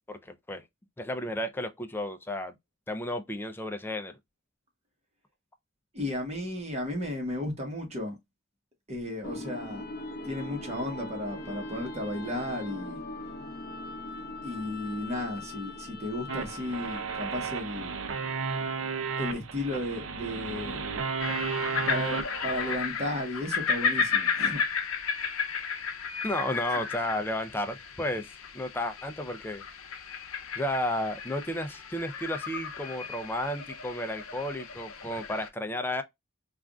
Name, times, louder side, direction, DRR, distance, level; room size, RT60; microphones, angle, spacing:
voice 1, 0.1-0.6 1.0-2.6 2.9-4.1 26.2-29.6 30.6-36.0, left 1 dB, 10° left, 0.4 m, -33 dB
voice 2, 5.9-8.2 8.9-9.8 10.2-13.0 14.4-17.9 19.2-20.9 21.8-24.6, left 1 dB, 30° right, 1.2 m, -34 dB
sound 1, 9.2-17.4, left 2 dB, 50° left, 0.7 m, -40 dB
sound 2, 16.3-22.8, right 5 dB, 70° right, 0.6 m, -33 dB
sound 3, 21.2-35.5, left 6 dB, 85° left, 0.6 m, -33 dB
3.4 x 2.5 x 2.3 m
head